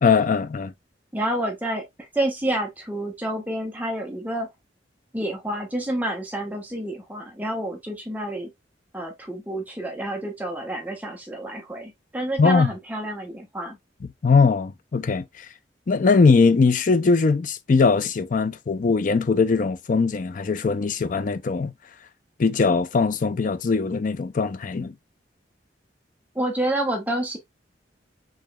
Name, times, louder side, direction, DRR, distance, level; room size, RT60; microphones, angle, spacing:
voice 1, 0.0-0.7 12.4-12.7 14.2-15.5 15.9-21.7 22.4-24.9, left 4 dB, 45° left, 0.4 m, -20 dB
voice 2, 1.1-4.5 5.1-8.5 8.9-13.8 26.3-27.4, right 1 dB, 10° right, 0.9 m, -29 dB
4.7 x 3.0 x 2.3 m
head